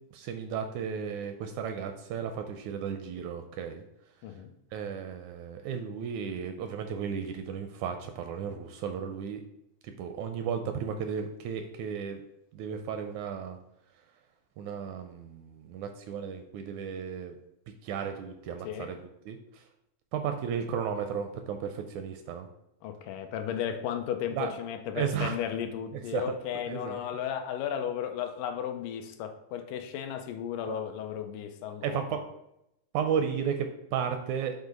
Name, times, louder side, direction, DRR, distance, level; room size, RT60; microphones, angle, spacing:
voice 1, 0.1-3.8 4.7-9.4 9.8-12.2 12.5-13.6 14.6-17.3 17.8-19.0 19.3-19.6 20.1-22.5 24.4-24.5 25.0-25.4 26.1-26.4 26.7-27.0 30.6-30.9 31.8-32.2 32.9-34.5, right 7 dB, 80° right, 6 dB, 1.7 m, -34 dB
voice 2, 22.8-32.2, left 9 dB, 90° left, 7 dB, 2.2 m, -34 dB
7.9 x 2.7 x 5.1 m, 0.82 s
omnidirectional pair, 3.7 m